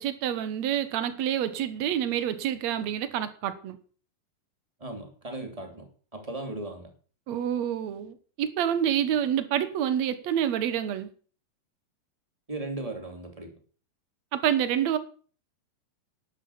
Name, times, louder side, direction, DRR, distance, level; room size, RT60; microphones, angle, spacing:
voice 1, 0.0-3.8 7.3-11.1 14.3-15.0, right 10 dB, 75° right, 1.6 m, -27 dB
voice 2, 4.8-6.9 12.5-13.5, right 2 dB, 10° right, 2.1 m, -37 dB
11.5 x 10.0 x 7.2 m
omnidirectional pair, 4.9 m